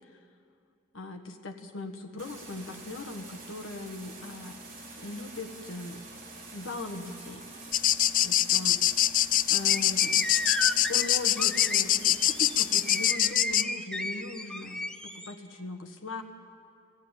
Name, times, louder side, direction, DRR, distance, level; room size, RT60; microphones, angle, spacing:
voice 1, 0.9-4.6 5.0-6.0 6.5-7.4 8.2-9.2 9.5-10.3 10.9-16.2, left 2 dB, 85° left, 4 dB, 1.6 m, -39 dB
sound 1, 2.2-13.0, right 2 dB, 40° right, 3.7 m, -46 dB
sound 2, 7.7-13.6, left 12 dB, 40° left, 0.4 m, -24 dB
sound 3, 9.7-15.3, left 1 dB, 5° left, 0.7 m, -34 dB
21.0 x 15.5 x 9.0 m, 2.5 s
head